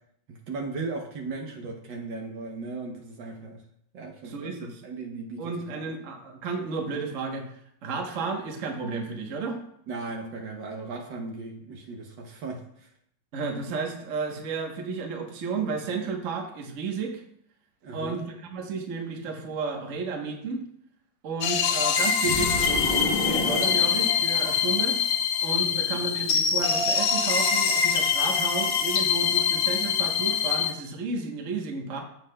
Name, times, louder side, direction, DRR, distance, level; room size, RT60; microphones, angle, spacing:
voice 1, 0.3-3.6 3.9-4.6 4.8-5.8 9.9-12.9 17.8-18.3 25.7-26.0, right 3 dB, 65° right, 2 dB, 1.5 m, -37 dB
voice 2, 4.2-4.8 5.4-9.6 13.3-17.2 17.9-20.6 21.2-25.0 25.4-32.0, right 4 dB, 45° right, 2 dB, 1.2 m, -32 dB
sound 1, 21.4-30.7, left 7 dB, 70° left, 1.4 m, -24 dB
sound 2, 22.2-24.7, left 2 dB, 25° left, 0.9 m, -31 dB
15.0 x 5.6 x 2.2 m, 0.70 s
omnidirectional pair, 2.3 m